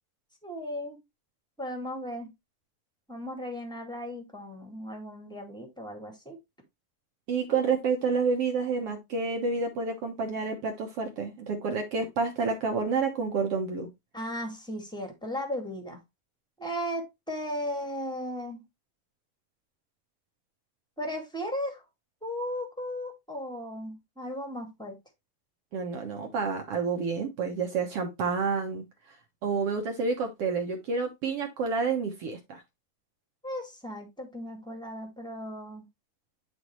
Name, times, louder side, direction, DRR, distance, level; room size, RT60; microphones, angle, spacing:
voice 1, 0.4-1.0 1.6-2.3 3.1-6.4 14.1-16.0 16.6-18.6 21.0-21.8 22.2-24.9 33.4-35.9, equal, ahead, 1.1 m, -36 dB
voice 2, 7.3-13.9 25.7-28.8 29.4-32.6, right 4 dB, 60° right, 1.6 m, -29 dB
11.0 x 4.0 x 3.1 m
omnidirectional pair, 3.9 m